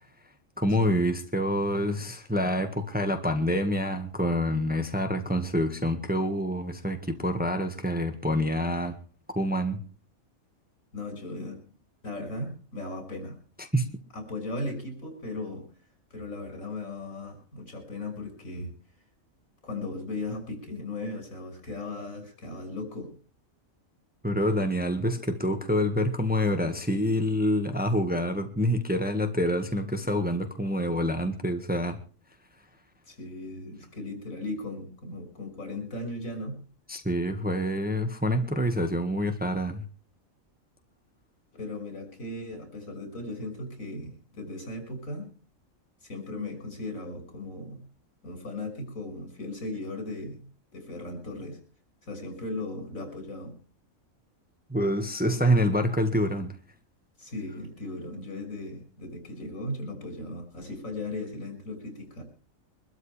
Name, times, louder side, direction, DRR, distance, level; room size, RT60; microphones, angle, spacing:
voice 1, 0.6-9.0 9.3-9.8 13.6-13.9 24.2-32.0 36.9-39.8 54.7-56.5, equal, 5° right, 6 dB, 1.6 m, -27 dB
voice 2, 10.9-11.6 12.0-13.4 14.1-15.7 16.1-18.7 19.6-23.1 33.1-36.6 41.5-45.3 46.0-47.8 48.2-50.4 50.7-51.6 52.0-53.5 57.2-62.2, left 2 dB, 75° left, 6 dB, 6.6 m, -37 dB
24.5 x 13.0 x 3.3 m, 0.37 s
omnidirectional pair, 1.4 m